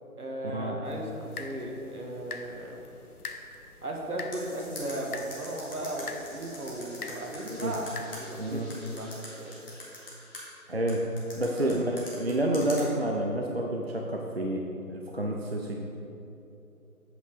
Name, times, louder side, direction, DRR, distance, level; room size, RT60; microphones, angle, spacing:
voice 1, 0.2-2.9 3.8-7.9 8.2-9.6 11.5-11.8, right 1 dB, 75° right, -1 dB, 1.8 m, -36 dB
sound 1, 0.9-8.6, left 4 dB, 80° left, 0.9 m, -45 dB
sound 2, 4.3-8.2 8.7-10.4 10.9-12.8, left 2 dB, 40° left, 1.9 m, -42 dB
sound 3, 4.3-11.0, equal, ahead, 1.6 m, -53 dB
voice 2, 7.4-7.7 8.4-8.7 10.7-11.1 11.4-14.6 14.9-15.8, right 1 dB, 45° right, 0 dB, 0.5 m, -29 dB
8.2 x 6.0 x 4.8 m, 2.9 s
figure-of-eight pair, 170°, 45 cm